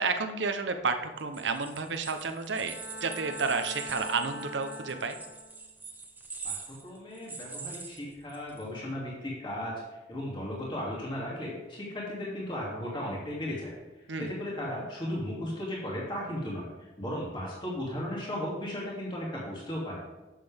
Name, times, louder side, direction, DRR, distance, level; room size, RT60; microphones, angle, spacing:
voice 1, 0.0-5.2 14.1-14.3, right 4 dB, 75° right, 7 dB, 0.8 m, -31 dB
sound 1, 1.2-8.6, right 4 dB, 10° right, 0.9 m, -43 dB
Bowed string instrument, 2.5-5.7, left 1 dB, 65° left, 3.1 m, -43 dB
voice 2, 6.4-9.8 10.1-13.7 14.2-16.7 17.0-20.0, left 1 dB, 25° left, -5 dB, 2.7 m, -35 dB
10.5 x 7.5 x 3.6 m, 1.1 s
head